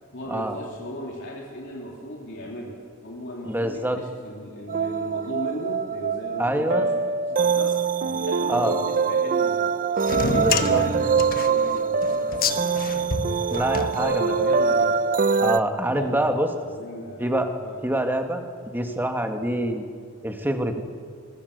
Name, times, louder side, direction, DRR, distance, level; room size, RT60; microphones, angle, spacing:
voice 1, 0.1-9.8 10.1-12.9 13.2-13.6 14.0-15.0 15.9-18.0, left 1 dB, 60° left, -2 dB, 3.2 m, -37 dB
voice 2, 3.4-4.0 6.4-6.9 8.5-8.8 10.3-10.8 13.5-14.3 15.4-16.5 17.2-17.5 17.8-19.8 20.2-20.8, right 1 dB, 10° right, 5 dB, 1.9 m, -25 dB
sound 1, 4.7-15.6, right 5 dB, 40° right, 0.6 m, -24 dB
sound 2, 10.0-14.6, left 4 dB, 45° left, 1.3 m, -29 dB
25.0 x 22.5 x 6.8 m, 2.1 s
head